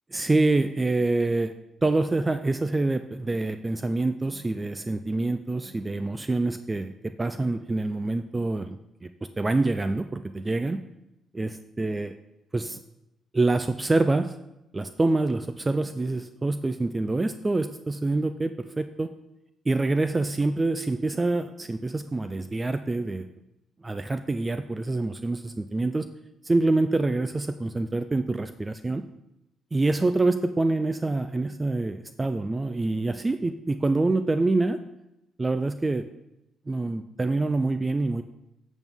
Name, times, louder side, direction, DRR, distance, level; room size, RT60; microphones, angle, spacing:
voice 1, 0.1-1.5 1.8-10.8 11.3-12.1 12.5-12.8 13.3-14.4 14.7-19.1 19.7-23.3 23.8-26.1 26.4-29.0 29.7-34.8 35.4-36.1 36.7-38.2, right 2 dB, 20° right, 10 dB, 0.4 m, -26 dB
8.0 x 7.1 x 3.6 m, 0.89 s
cardioid pair, 90°, 0 cm